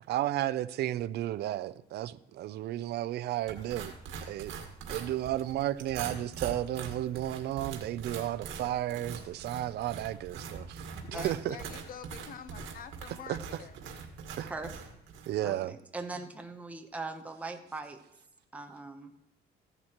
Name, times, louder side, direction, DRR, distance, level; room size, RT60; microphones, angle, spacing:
voice 1, 0.1-3.9 4.2-4.6 4.9-11.6 13.3-13.4 14.4-14.5 15.3-15.7, right 13 dB, 55° right, 0.5 m, -33 dB
sound 1, 3.5-15.3, right 6 dB, 80° right, 1.9 m, -43 dB
voice 2, 11.0-13.7, left 8 dB, 45° left, 0.8 m, -46 dB
voice 3, 15.4-18.0 18.5-19.1, right 3 dB, 5° right, 0.8 m, -40 dB
14.5 x 11.0 x 3.0 m
cardioid pair, 150°, 20 cm